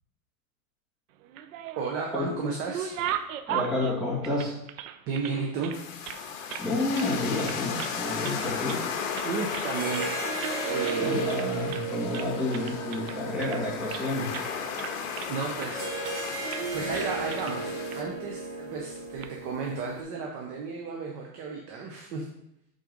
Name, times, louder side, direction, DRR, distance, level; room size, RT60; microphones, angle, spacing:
sound 1, 1.2-2.0 2.4-5.3 5.6-6.7 6.9-7.1 7.4-8.0 8.2-8.9 9.1-10.1 10.4-10.6 10.8-11.0 11.3-11.9 12.1-14.0 14.3-14.5 14.8-15.7 16.0-16.2 16.5-16.7 16.9-17.6 17.9-18.0 19.0-19.3, right 10 dB, 65° right, 0.7 m, -37 dB
voice 1, 1.8-3.0 5.1-5.8 9.2-10.1 10.7-11.3 15.3-15.9 16.7-22.3, right 4 dB, 25° right, 0 dB, 0.6 m, -33 dB
voice 2, 3.5-4.5 6.6-8.8 11.0-14.2, left 2 dB, ahead, -7 dB, 1.7 m, -30 dB
sound 2, 5.7-18.0, left 6 dB, 60° left, 1.3 m, -35 dB
sound 3, 6.6-7.3 8.2-8.3 9.6-20.0, right 4 dB, 50° right, 2.3 m, -35 dB
7.6 x 3.8 x 5.2 m, 0.80 s
supercardioid pair, 170°, 44 cm